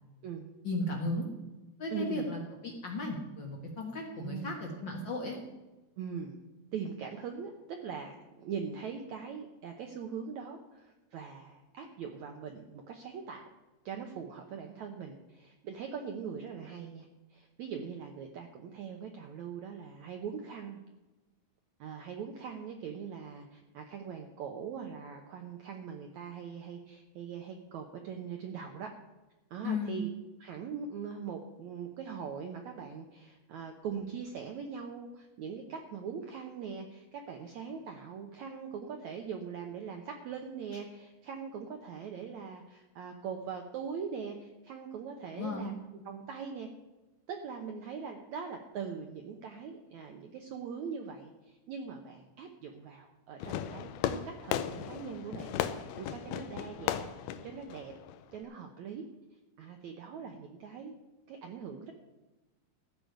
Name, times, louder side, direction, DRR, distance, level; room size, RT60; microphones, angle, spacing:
voice 1, 0.6-1.2 1.8-5.4 29.6-30.0 45.4-45.7, left 2 dB, 65° left, 0 dB, 1.1 m, -35 dB
voice 2, 1.9-2.3 4.2-4.6 6.0-6.3 6.7-13.5 13.9-20.8 21.8-28.9 29.5-30.1 30.4-46.7 47.3-57.9 58.3-59.0 59.6-61.0 61.3-61.9, right 6 dB, 75° right, 4 dB, 1.7 m, -41 dB
Fireworks, 53.4-58.4, left 10 dB, 85° left, 2.6 m, -36 dB
14.5 x 5.1 x 9.2 m, 1.1 s
omnidirectional pair, 4.5 m